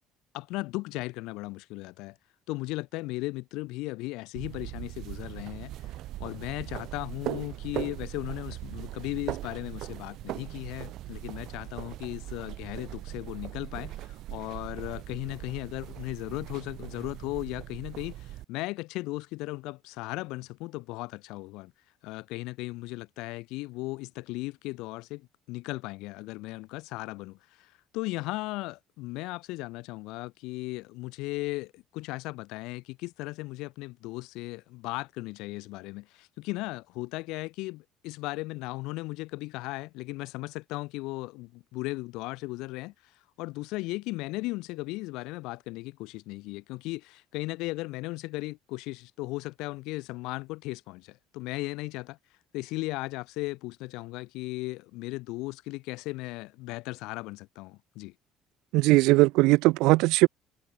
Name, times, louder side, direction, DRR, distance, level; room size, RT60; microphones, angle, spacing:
voice 1, 0.3-2.2 2.5-5.9 6.2-21.7 22.0-43.1 43.4-52.2 52.5-58.1, left 22 dB, 85° left, 6.0 m, -36 dB
sound 1, 4.4-18.4, right 15 dB, 65° right, 6.0 m, -39 dB
voice 2, 58.7-60.3, right 21 dB, 85° right, 0.5 m, -20 dB
cardioid pair, 120°, 0 cm